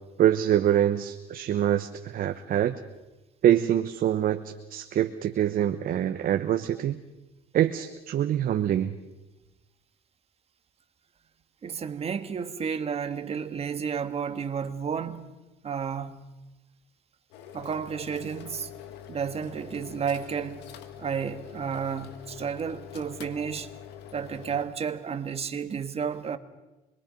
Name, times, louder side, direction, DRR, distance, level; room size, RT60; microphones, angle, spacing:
voice 1, 0.2-2.8 3.4-7.0 7.5-8.9, right 11 dB, 60° right, 1.1 m, -25 dB
voice 2, 11.6-15.3 15.6-16.3 17.5-18.7 19.1-20.7 21.0-23.7 24.1-26.4, right 6 dB, 35° right, 1.6 m, -32 dB
sound 1, 17.3-24.7, left 10 dB, 90° left, 1.7 m, -45 dB
26.5 x 22.0 x 5.3 m
cardioid pair, 110°, 17 cm